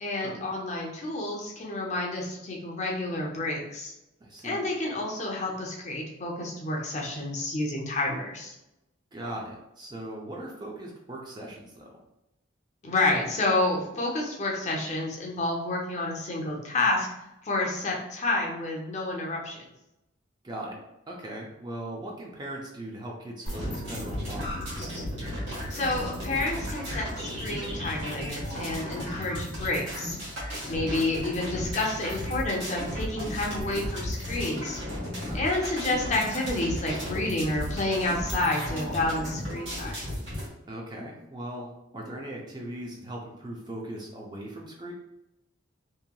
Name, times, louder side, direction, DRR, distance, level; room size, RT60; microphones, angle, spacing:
voice 1, 0.0-3.9 4.4-8.5 12.8-17.1 17.4-19.6 25.7-30.2 30.7-34.8 35.3-40.0, left 2 dB, 35° left, -1 dB, 0.5 m, -29 dB
voice 2, 4.2-4.6 9.1-12.0 20.4-20.8 21.1-24.6 30.7-31.0 35.2-35.4 40.7-41.7 41.9-44.9, right 1 dB, 20° right, -2 dB, 0.4 m, -39 dB
sound 1, 23.4-40.5, left 1 dB, 70° right, 1.3 m, -35 dB
sound 2, 23.5-34.4, right 1 dB, 90° left, 0.5 m, -44 dB
2.9 x 2.7 x 2.2 m, 0.91 s
head